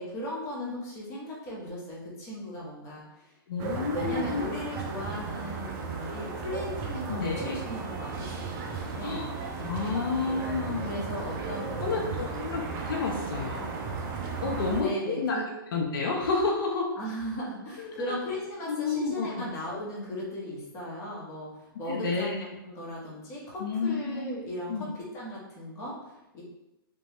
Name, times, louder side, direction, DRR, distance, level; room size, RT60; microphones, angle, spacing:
voice 1, 0.0-3.3 3.7-9.3 10.3-12.4 14.4-15.4 17.0-22.3 22.6-26.4, equal, 20° left, -5 dB, 0.9 m, -37 dB
voice 2, 3.5-4.4 7.1-7.5 9.0-9.3 9.6-11.1 11.8-13.7 14.4-15.4 15.7-16.9 17.8-18.2 18.7-19.4 21.9-22.4 23.6-24.3 24.7-24.8, left 4 dB, 65° left, 0 dB, 0.6 m, -30 dB
sound 1, 3.6-14.8, right 4 dB, 25° right, 0.4 m, -35 dB
3.1 x 2.2 x 2.9 m, 0.94 s
hypercardioid pair, 140°, 12 cm